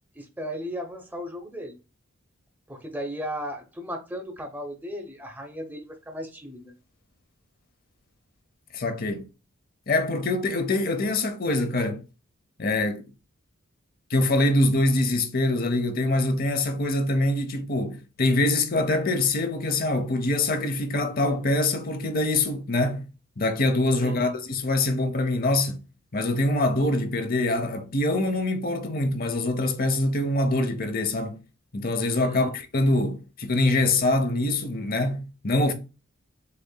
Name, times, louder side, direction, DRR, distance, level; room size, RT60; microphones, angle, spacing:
voice 1, 0.2-1.8 2.7-6.7 24.0-24.3 32.2-32.5, equal, 10° right, 0.8 m, -36 dB
voice 2, 8.7-9.3 9.9-12.0 12.6-13.0 14.1-23.1 23.4-25.8 26.1-31.4 31.7-35.7, left 2 dB, 45° left, 0.7 m, -24 dB
6.7 x 2.7 x 2.2 m
head